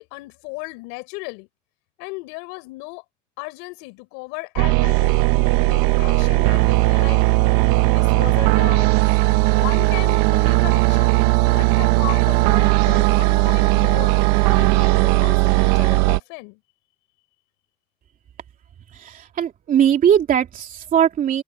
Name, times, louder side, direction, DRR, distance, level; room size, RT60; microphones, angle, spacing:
voice 1, 0.0-1.5 2.0-3.0 3.4-5.2 5.6-7.2 7.9-8.9 9.5-11.2 11.5-16.6, left 28 dB, 80° left, 5.3 m, -35 dB
sound 1, 4.6-16.2, right 21 dB, 85° right, 1.1 m, -17 dB
voice 2, 18.9-21.4, right 9 dB, 45° right, 3.1 m, -19 dB
supercardioid pair, 100°, 19 cm